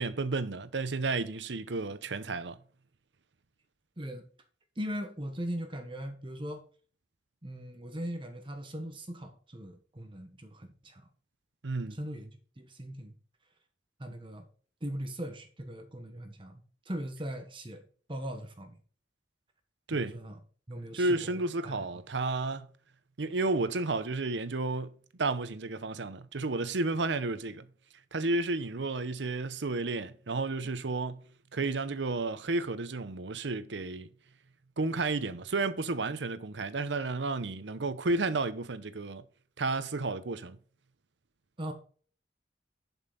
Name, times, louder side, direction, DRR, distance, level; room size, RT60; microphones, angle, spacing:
voice 1, 0.0-2.6 11.6-12.0 19.9-20.2 20.9-22.7 23.2-24.9 25.2-27.7 28.1-31.2 31.5-34.1 34.8-39.2 39.6-40.6, right 3 dB, 85° right, 0.8 m, -32 dB
voice 2, 4.7-6.7 7.4-11.0 11.9-13.1 14.0-14.5 14.8-17.8 18.1-18.8 19.9-20.4 20.7-21.8 41.6-41.7, equal, 30° right, 1.2 m, -39 dB
11.0 x 5.5 x 4.0 m
head